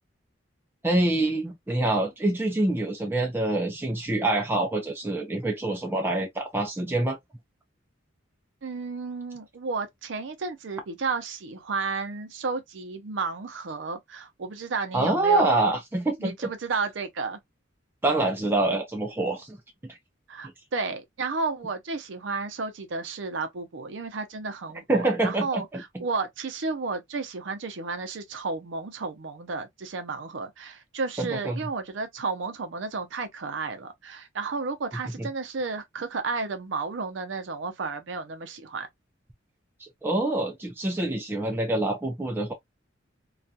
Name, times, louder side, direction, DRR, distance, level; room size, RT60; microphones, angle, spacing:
voice 1, 0.8-7.2 14.9-16.3 18.0-19.6 24.9-26.0 31.2-31.6 35.2-35.3 39.8-42.5, right 2 dB, 10° right, 0.4 m, -26 dB
voice 2, 8.6-15.6 16.2-17.4 20.3-38.9, right 4 dB, 70° right, 0.5 m, -32 dB
2.3 x 2.2 x 2.6 m
head